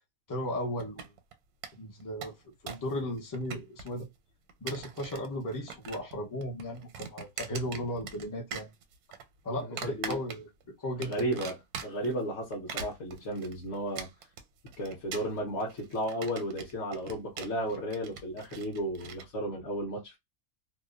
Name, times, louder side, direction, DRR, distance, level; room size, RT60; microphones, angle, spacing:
voice 1, 0.3-1.1 1.7-2.3 2.6-4.1 4.6-8.7 9.4-11.3, equal, 25° left, 0.4 m, -36 dB
sound 1, 0.8-1.3 1.6-1.7 2.0-2.9 3.2-4.0 4.5-5.3 5.5-6.2 6.4-8.3 8.5-9.2 9.8-10.6 11.0-12.1 12.5-19.2, right 7 dB, 85° right, 1.1 m, -42 dB
voice 2, 9.7-10.2 11.0-11.6 11.8-14.1 14.8-20.2, equal, 55° left, 0.9 m, -34 dB
2.7 x 2.1 x 2.3 m
omnidirectional pair, 1.6 m